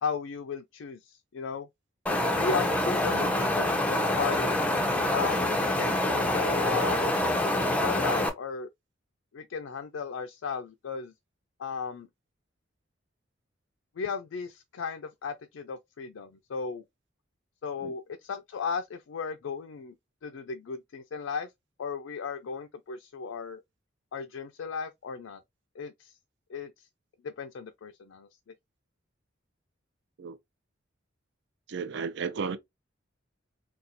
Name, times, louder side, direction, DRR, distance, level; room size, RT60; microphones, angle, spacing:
voice 1, 0.0-1.7 2.3-4.5 5.1-7.1 7.8-8.7 9.3-11.1 11.6-12.1 14.0-16.8 17.6-20.0 20.2-21.5 21.8-23.6 24.1-25.4 25.8-26.1 26.5-26.9 27.2-28.3, left 5 dB, 75° left, 0.4 m, -35 dB
Wind, 2.1-8.3, left 1 dB, 5° left, 0.4 m, -26 dB
voice 2, 31.7-32.6, right 5 dB, 60° right, 0.5 m, -34 dB
4.1 x 2.3 x 2.6 m
head